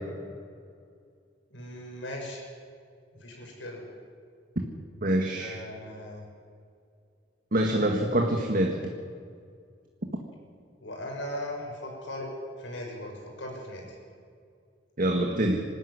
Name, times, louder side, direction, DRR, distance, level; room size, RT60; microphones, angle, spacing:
voice 1, 1.5-2.4 3.2-3.8 5.3-6.2 10.8-12.3 12.6-14.0, left 1 dB, 75° left, 0 dB, 6.3 m, -38 dB
voice 2, 5.0-5.6 7.5-8.8 15.0-15.7, right 1 dB, 50° right, 2 dB, 1.7 m, -25 dB
25.0 x 13.5 x 9.7 m, 2.2 s
head